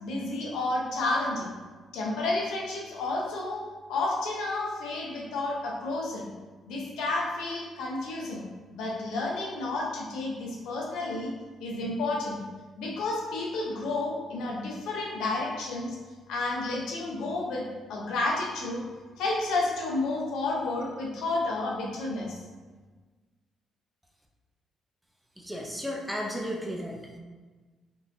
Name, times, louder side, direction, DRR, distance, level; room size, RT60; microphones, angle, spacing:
voice 1, 0.0-1.5 1.9-3.6 3.9-6.2 6.7-8.5 8.7-11.3 11.6-12.4 12.8-16.0 16.3-18.8 19.2-22.3, left 2 dB, 90° left, -2 dB, 0.7 m, -31 dB
voice 2, 25.4-27.1, equal, 5° right, -1 dB, 0.6 m, -34 dB
3.8 x 2.8 x 2.6 m, 1.4 s
cardioid pair, 90°, 0 cm